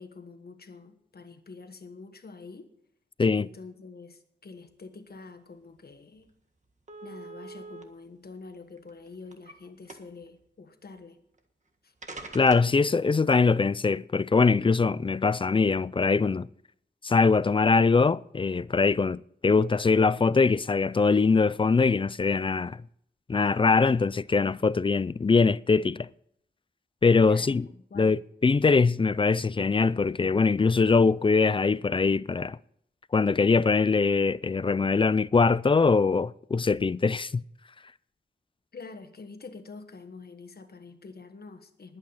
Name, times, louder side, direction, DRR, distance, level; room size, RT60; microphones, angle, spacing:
voice 1, 0.0-2.7 3.3-6.3 7.0-11.2 11.8-11.9 27.2-28.2 38.7-42.0, left 4 dB, 65° left, 1.5 m, -46 dB
sound 1, 5.8-5.9 6.2-6.3 6.9-7.8 8.7-9.5 9.9-10.3 11.4-11.5 12.0-12.8, right 3 dB, 45° right, 1.7 m, -43 dB
voice 2, 12.3-16.5 17.0-22.8 23.3-26.1 27.0-27.6 27.9-32.6 33.1-37.4, left 4 dB, 30° left, 0.4 m, -22 dB
20.5 x 8.8 x 4.1 m
wide cardioid pair, 105°, 18 cm